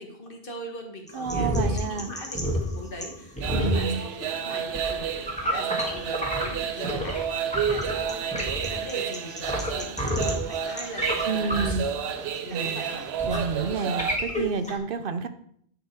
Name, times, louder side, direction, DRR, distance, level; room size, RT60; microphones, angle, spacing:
voice 1, 0.0-4.1 4.4-8.3 8.6-11.7 12.4-13.9 14.8-14.9, equal, 60° left, 2 dB, 1.7 m, -41 dB
sound 1, 1.1-7.2 7.5-14.8, equal, 5° left, 1.7 m, -30 dB
voice 2, 1.1-2.1 3.5-4.0 11.2-11.9 12.5-12.8 13.2-15.3, right 5 dB, 65° right, 10 dB, 0.8 m, -29 dB
sound 2, 3.4-14.2, right 7 dB, 85° right, 0.9 m, -31 dB
10.5 x 5.1 x 4.7 m, 0.64 s
omnidirectional pair, 1.0 m